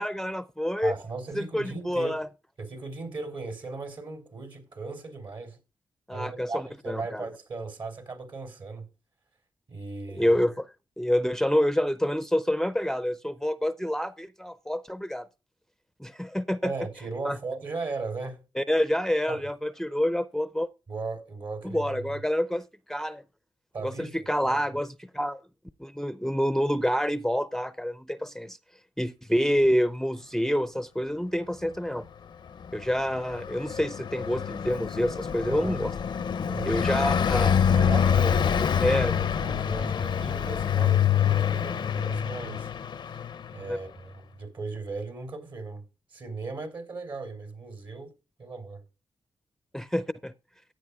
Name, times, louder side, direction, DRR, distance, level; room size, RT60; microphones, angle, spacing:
voice 1, 0.0-0.9 1.3-2.3 6.1-7.3 10.1-10.7 11.0-15.3 16.0-16.7 17.2-17.4 18.6-20.7 21.6-23.2 23.8-25.4 25.8-28.6 29.0-32.1 32.7-35.9 36.7-37.6 38.8-39.1 43.7-43.8 49.7-50.3, equal, 5° left, 0.5 m, -27 dB
voice 2, 0.8-2.2 2.6-5.6 6.1-8.9 9.7-10.3 16.6-18.4 19.3-19.4 20.9-22.0 23.7-24.2 24.4-24.5 35.3-35.8 36.5-37.1 37.6-42.7 43.0-43.2 43.5-45.8 46.1-48.1 48.4-48.8, right 3 dB, 65° right, 3.5 m, -37 dB
Car passing by, 32.6-43.7, left 8 dB, 65° left, 0.5 m, -26 dB
15.5 x 8.6 x 2.3 m
cardioid pair, 55°, 8 cm